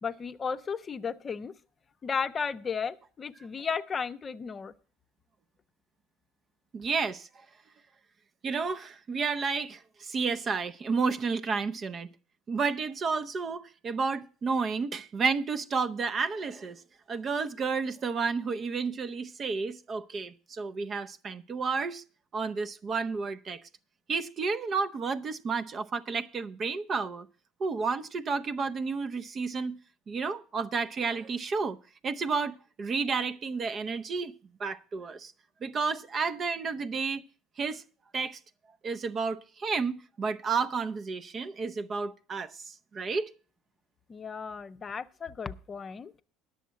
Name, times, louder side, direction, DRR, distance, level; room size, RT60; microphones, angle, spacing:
voice 1, 0.0-1.5 2.0-4.7 44.1-46.1, left 6 dB, 30° left, 0.6 m, -34 dB
voice 2, 6.7-7.3 8.4-12.1 12.5-16.8 17.1-22.0 22.3-23.6 24.1-27.3 27.6-29.8 30.1-31.8 32.0-34.3 34.6-35.3 35.6-37.2 37.6-37.8 38.1-38.4 38.8-43.3, right 4 dB, 40° right, 0.7 m, -31 dB
10.0 x 7.1 x 7.4 m
hypercardioid pair, 75°, 0 cm